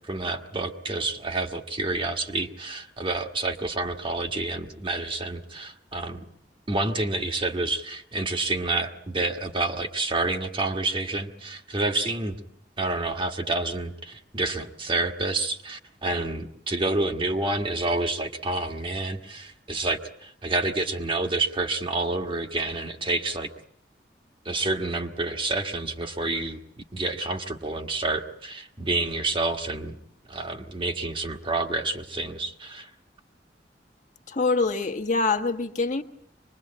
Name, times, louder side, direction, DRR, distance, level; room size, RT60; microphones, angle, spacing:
voice 1, 0.0-6.2 6.7-12.4 12.8-23.5 24.4-30.0 30.3-32.9, right 2 dB, 30° right, 6 dB, 1.5 m, -28 dB
voice 2, 34.3-36.0, left 3 dB, 45° left, 7 dB, 1.4 m, -25 dB
25.0 x 21.5 x 8.6 m, 0.66 s
head